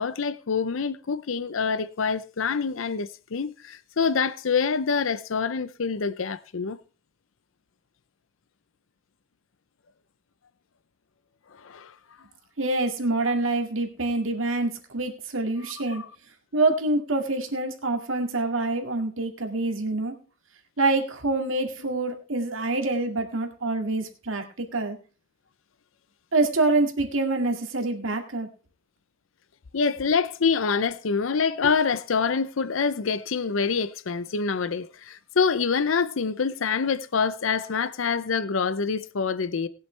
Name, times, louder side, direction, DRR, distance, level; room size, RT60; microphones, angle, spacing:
voice 1, 0.0-6.8 11.6-11.9 15.9-16.1 29.7-39.7, left 5 dB, 70° left, 0.6 m, -26 dB
voice 2, 12.6-16.0 16.5-20.2 20.8-25.0 26.3-28.5, right 2 dB, 75° right, 2.1 m, -26 dB
19.5 x 7.9 x 3.3 m
head